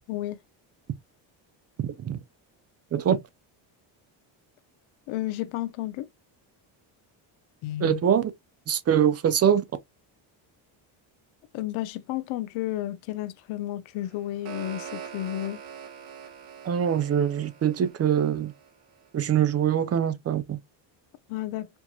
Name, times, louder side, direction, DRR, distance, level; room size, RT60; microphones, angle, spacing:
voice 1, 0.1-0.4 5.1-6.1 7.6-8.0 11.5-15.6 21.3-21.7, left 14 dB, 75° left, 0.7 m, -32 dB
voice 2, 1.8-2.2 2.9-3.2 7.8-8.3 8.7-9.6 16.7-18.5 19.1-20.6, right 9 dB, 30° right, 0.5 m, -23 dB
sound 1, 14.0-19.1, right 8 dB, 85° right, 1.3 m, -44 dB
4.5 x 2.9 x 2.3 m
cardioid pair, 110°, 48 cm